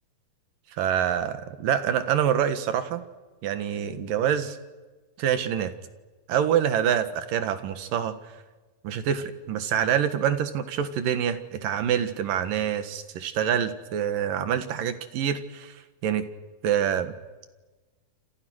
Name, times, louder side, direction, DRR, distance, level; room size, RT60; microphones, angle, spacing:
voice 1, 0.8-3.0 3.4-4.6 5.2-5.7 6.3-8.2 8.8-16.2 16.6-17.1, right 9 dB, 80° right, 10 dB, 3.3 m, -26 dB
29.0 x 27.5 x 6.4 m, 1.2 s
omnidirectional pair, 3.9 m